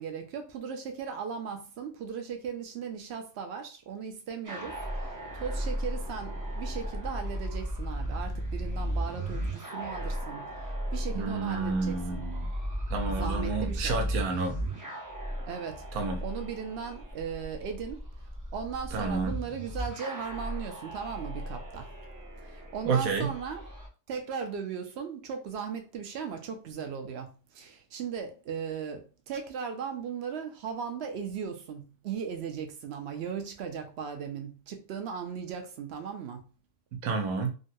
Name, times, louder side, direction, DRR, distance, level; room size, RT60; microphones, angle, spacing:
voice 1, 0.0-10.4 10.9-12.2 13.1-14.0 15.5-15.8 16.2-18.0 18.5-21.9 22.4-23.6 24.1-36.4, right 7 dB, 60° right, 0.7 m, -37 dB
sound 1, 4.5-23.9, right 1 dB, 25° right, 0.4 m, -35 dB
voice 2, 11.1-12.5 12.9-14.6 15.9-16.2 18.9-19.4 22.8-23.3 36.9-37.5, right 4 dB, 80° right, 1.1 m, -30 dB
3.7 x 2.1 x 2.6 m
omnidirectional pair, 1.5 m